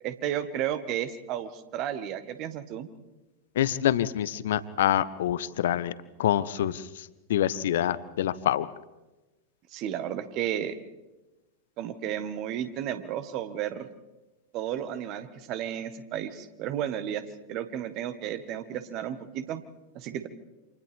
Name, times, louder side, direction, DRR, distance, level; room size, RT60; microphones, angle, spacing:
voice 1, 0.0-2.9 9.7-10.8 11.8-13.9 14.5-17.2 17.5-19.6 20.0-20.3, right 10 dB, 40° right, 11 dB, 1.7 m, -33 dB
voice 2, 3.5-5.9 6.2-8.7, left 11 dB, 60° left, 17 dB, 0.8 m, -26 dB
29.5 x 27.5 x 3.6 m, 1.1 s
figure-of-eight pair, 90°, 0 cm